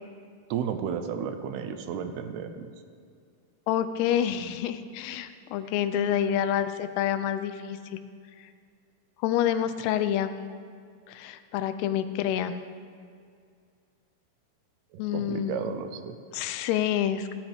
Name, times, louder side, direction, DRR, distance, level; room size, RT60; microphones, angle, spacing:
voice 1, 0.5-2.7 14.9-16.2, right 7 dB, 80° right, 8 dB, 2.7 m, -33 dB
voice 2, 3.7-8.0 9.2-10.3 11.1-12.6 15.0-15.6 16.3-17.3, left 10 dB, 85° left, 11 dB, 2.7 m, -28 dB
17.5 x 12.0 x 3.5 m, 2.2 s
omnidirectional pair, 4.6 m